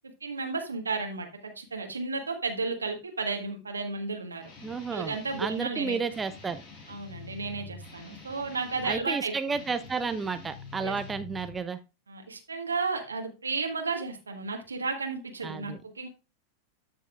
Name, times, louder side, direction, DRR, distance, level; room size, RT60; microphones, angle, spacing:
voice 1, 0.0-4.5 4.9-6.0 6.9-9.6 10.8-11.0 12.1-16.1, right 4 dB, 75° right, 4 dB, 1.4 m, -33 dB
Guitar, 4.4-5.7 6.1-9.0 9.5-11.6, left 4 dB, 45° left, 5.0 m, -46 dB
voice 2, 4.6-6.6 8.8-11.8 15.4-15.8, right 5 dB, 15° right, 11 dB, 0.6 m, -32 dB
13.0 x 5.6 x 2.4 m, 0.28 s
figure-of-eight pair, 90°, 0 cm